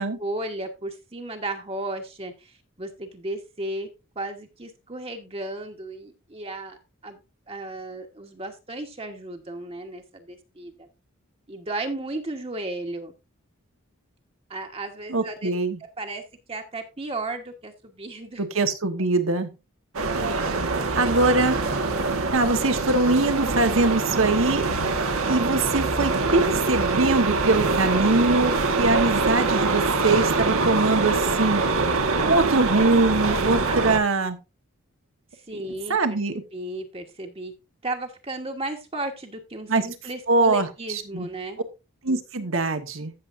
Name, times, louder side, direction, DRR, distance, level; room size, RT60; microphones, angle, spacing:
voice 1, 0.0-3.9 4.1-7.2 7.5-10.9 11.5-13.1 14.5-15.5 16.0-16.2 16.5-18.4 33.6-33.9 35.3-37.5 37.8-41.6, right 2 dB, 25° right, 4 dB, 1.1 m, -34 dB
voice 2, 15.1-15.8 18.4-19.5 20.9-21.6 22.3-24.7 25.3-31.7 32.2-34.4 35.9-36.4 39.7-39.9 40.3-41.3 42.0-43.1, right 3 dB, 70° right, 7 dB, 1.2 m, -23 dB
sound 1, 19.9-34.0, right 3 dB, 90° right, 1.4 m, -24 dB
14.5 x 7.0 x 2.6 m, 0.26 s
head